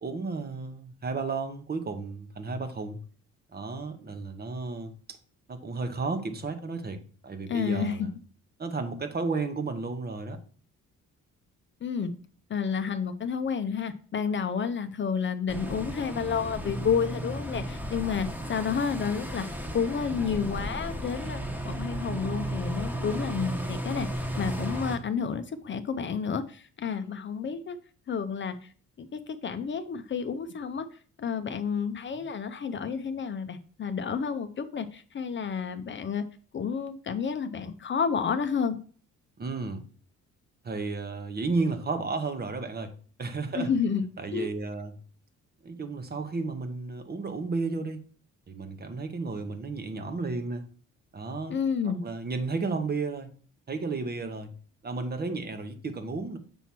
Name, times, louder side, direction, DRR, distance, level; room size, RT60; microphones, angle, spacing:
voice 1, 0.0-3.0 3.5-4.9 5.5-8.1 8.6-10.4 39.4-39.8 40.6-43.7 44.2-44.9 45.6-48.0 48.5-50.6 51.1-51.5 52.0-53.3 53.7-54.5 54.8-56.4, right 3 dB, 30° right, 0.9 m, -33 dB
voice 2, 7.5-8.1 11.8-12.1 12.5-19.5 19.7-27.8 28.1-28.7 29.0-30.9 31.2-36.2 36.5-38.8 43.5-44.0 44.3-44.5 51.5-52.0, left 6 dB, 40° left, 0.6 m, -30 dB
sound 1, 15.5-25.0, right 1 dB, 5° right, 1.2 m, -34 dB
7.0 x 3.0 x 5.9 m
cardioid pair, 90°, 30 cm